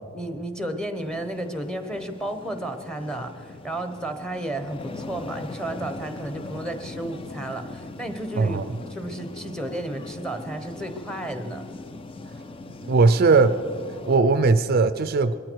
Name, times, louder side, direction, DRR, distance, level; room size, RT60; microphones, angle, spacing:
voice 1, 0.1-8.6 8.9-11.7, right 1 dB, 5° left, 7 dB, 1.0 m, -32 dB
sound 1, 0.9-14.2, left 3 dB, 25° left, 0.4 m, -40 dB
voice 2, 8.4-8.7 12.9-13.6 14.1-15.3, right 3 dB, 45° right, 11 dB, 0.4 m, -18 dB
21.5 x 13.5 x 4.6 m, 2.4 s
head